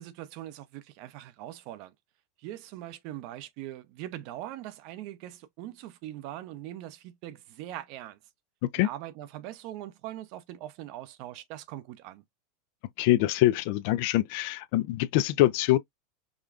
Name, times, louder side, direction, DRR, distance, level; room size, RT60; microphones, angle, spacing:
voice 1, 0.0-1.9 2.4-8.2 8.8-12.2, right 13 dB, 60° right, 0.6 m, -41 dB
voice 2, 13.0-15.8, left 15 dB, 65° left, 0.4 m, -24 dB
5.0 x 2.3 x 2.4 m
hypercardioid pair, 105°, 0 cm